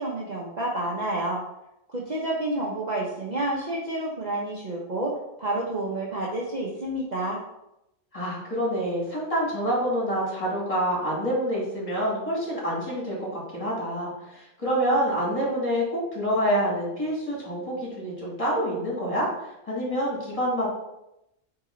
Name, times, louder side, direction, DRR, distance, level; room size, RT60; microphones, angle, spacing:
voice 1, 0.0-1.4 1.9-5.1 5.4-7.4, right 1 dB, 35° right, -4 dB, 0.9 m, -29 dB
voice 2, 8.1-20.7, equal, 25° left, -5 dB, 2.3 m, -27 dB
8.0 x 3.0 x 3.9 m, 0.87 s
omnidirectional pair, 1.5 m